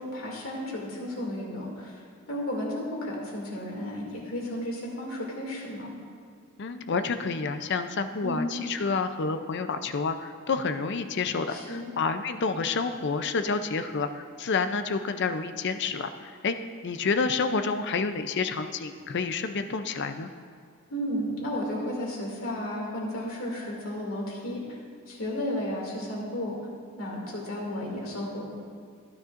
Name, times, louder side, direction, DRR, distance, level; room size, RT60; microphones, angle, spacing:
voice 1, 0.0-2.0 2.3-5.9 8.2-8.7 11.5-11.9 20.9-24.8 25.1-26.6 27.0-28.5, left 1 dB, 70° left, -3 dB, 2.5 m, -33 dB
voice 2, 6.6-16.6 16.8-20.3, left 4 dB, 55° left, 9 dB, 0.5 m, -29 dB
15.5 x 9.5 x 2.5 m, 2.1 s
head